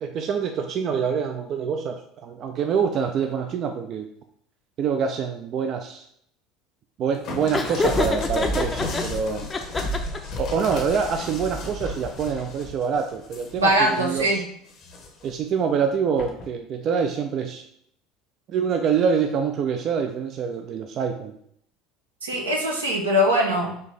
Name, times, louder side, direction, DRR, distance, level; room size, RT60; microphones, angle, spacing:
voice 1, 0.0-4.1 4.8-6.1 7.0-9.5 10.4-14.4 15.2-17.6 18.5-21.4, right 6 dB, 50° right, 5 dB, 0.3 m, -25 dB
sound 1, 7.2-14.2 14.7-15.3 16.2-16.5, left 1 dB, 50° left, 0.8 m, -33 dB
Laughter, 7.5-9.0 9.5-10.4, left 3 dB, 25° left, 0.5 m, -26 dB
voice 2, 13.6-14.4 22.2-23.7, equal, 85° right, 1 dB, 0.7 m, -21 dB
4.2 x 2.6 x 3.2 m, 0.68 s
figure-of-eight pair, 65°, 0 cm